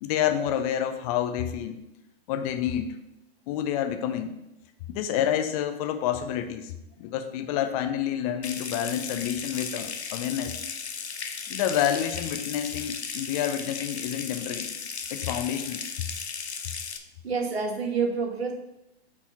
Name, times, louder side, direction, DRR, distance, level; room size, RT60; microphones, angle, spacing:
voice 1, 0.0-1.8 2.3-2.9 3.5-4.3 4.9-10.5 11.5-14.7 15.1-15.8, left 10 dB, 35° left, 8 dB, 0.6 m, -28 dB
Water tap faucet / Sink (filling or washing) / Trickle dribble, 8.4-17.0, left 6 dB, 80° left, 0.8 m, -36 dB
voice 2, 17.2-18.5, right 5 dB, 70° right, 3 dB, 1.4 m, -27 dB
4.7 x 4.2 x 5.6 m, 0.86 s
figure-of-eight pair, 115°, 32 cm